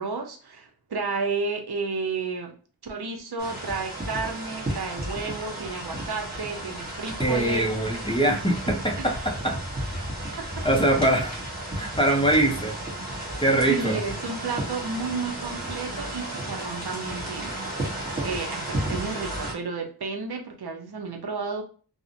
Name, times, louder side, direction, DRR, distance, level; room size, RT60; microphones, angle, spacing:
voice 1, 0.0-2.5 2.8-7.8 9.0-9.2 10.4-10.5 13.7-17.6 18.2-21.6, right 4 dB, 70° right, 3 dB, 0.6 m, -32 dB
sound 1, 3.4-19.5, right 1 dB, 25° right, 1.0 m, -33 dB
voice 2, 7.2-9.6 10.6-11.4 11.8-12.8 13.4-14.0, right 1 dB, 15° left, 1 dB, 0.5 m, -23 dB
2.5 x 2.0 x 2.5 m, 0.39 s
wide cardioid pair, 50°, 40 cm